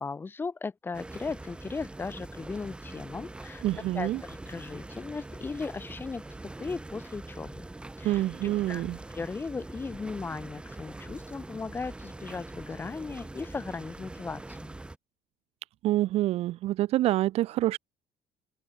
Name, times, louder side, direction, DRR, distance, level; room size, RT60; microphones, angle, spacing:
voice 1, 0.0-6.2 6.6-7.7 8.0-8.9 9.1-14.7, left 4 dB, 15° left, 1.7 m, -37 dB
sound 1, 0.9-15.0, right 2 dB, 10° right, 3.2 m, -43 dB
voice 2, 3.6-4.2 8.0-9.0 15.8-17.8, right 15 dB, 55° right, 1.2 m, -27 dB
open air
cardioid pair, 165°, 12 cm